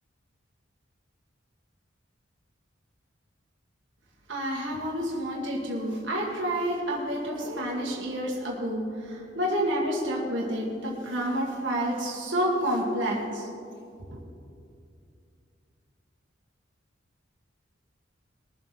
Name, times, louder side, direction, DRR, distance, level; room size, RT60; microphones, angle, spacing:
voice 1, 4.3-13.5, equal, 70° right, -4 dB, 2.0 m, -29 dB
21.0 x 7.7 x 4.3 m, 2.5 s
head